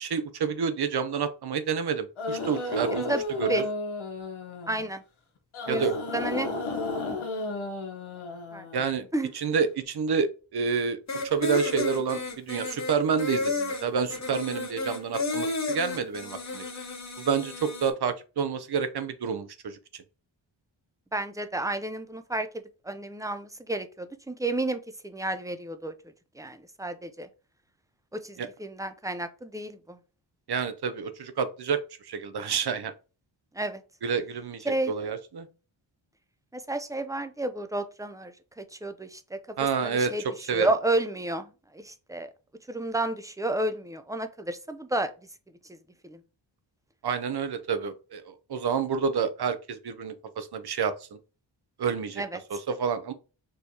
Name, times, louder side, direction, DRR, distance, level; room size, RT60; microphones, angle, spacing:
voice 1, 0.0-3.1 3.4-3.6 5.7-5.9 8.7-9.0 9.3-11.0 11.2-16.7 17.2-19.8 28.4-28.5 30.5-32.9 34.0-35.5 39.6-40.1 40.5-40.7 47.0-51.2 51.8-52.2 52.5-53.1, right 6 dB, 55° right, 11 dB, 0.7 m, -29 dB
sound 1, 2.2-4.9 5.5-9.1, left 2 dB, 80° left, 1.1 m, -33 dB
voice 2, 4.7-5.0 5.7-5.9 6.1-6.5 8.5-8.7 9.1-9.3 21.1-25.9 26.3-27.3 28.1-30.0 33.5-33.8 34.7-34.9 36.5-39.4 39.8-42.3 42.7-45.1 45.7-45.8 46.0-46.2 52.2-52.4, right 2 dB, 10° right, 9 dB, 0.4 m, -31 dB
sound 2, 11.1-17.9, left 3 dB, 35° left, 0.9 m, -32 dB
4.4 x 3.2 x 2.8 m, 0.34 s
cardioid pair, 65°, 48 cm